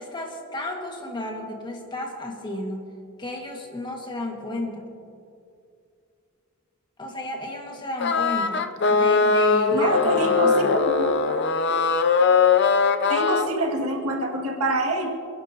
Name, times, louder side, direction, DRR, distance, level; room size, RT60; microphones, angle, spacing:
voice 1, 0.0-2.8 3.2-4.9 7.0-10.7, left 1 dB, 20° left, 1 dB, 1.7 m, -33 dB
sound 1, 8.0-13.5, left 5 dB, 55° left, 0.6 m, -20 dB
voice 2, 9.7-11.4 13.1-15.1, right 2 dB, 80° right, 0 dB, 2.0 m, -26 dB
28.0 x 11.0 x 2.8 m, 2.5 s
head